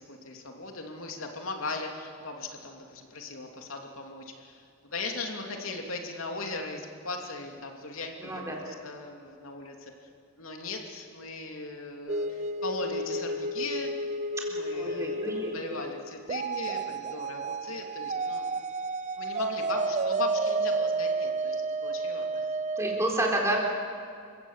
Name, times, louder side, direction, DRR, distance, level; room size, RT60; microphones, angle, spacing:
voice 1, 0.0-9.9 10.4-13.9 14.5-18.6 19.2-22.5, left 3 dB, 85° left, 2 dB, 2.9 m, -38 dB
voice 2, 8.2-8.6 14.7-15.9 22.8-23.6, right 1 dB, 15° right, -1 dB, 4.0 m, -30 dB
sound 1, 12.1-23.0, right 2 dB, 35° right, 0.5 m, -31 dB
29.0 x 16.0 x 7.5 m, 2.3 s
head